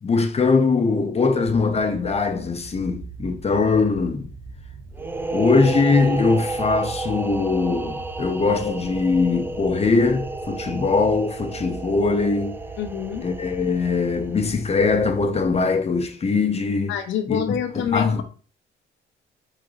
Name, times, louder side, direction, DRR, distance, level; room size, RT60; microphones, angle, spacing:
voice 1, 0.0-4.3 5.3-12.5 13.2-16.9 17.3-17.4 17.7-18.2, left 4 dB, 30° left, 0.8 m, -21 dB
sound 1, 1.4-15.6, right 3 dB, 85° right, 1.0 m, -41 dB
sound 2, 4.9-14.5, right 2 dB, 10° right, 0.4 m, -32 dB
voice 2, 12.8-13.2 16.9-18.2, left 9 dB, 75° left, 0.9 m, -26 dB
3.8 x 3.7 x 3.2 m
cardioid pair, 90°, 20 cm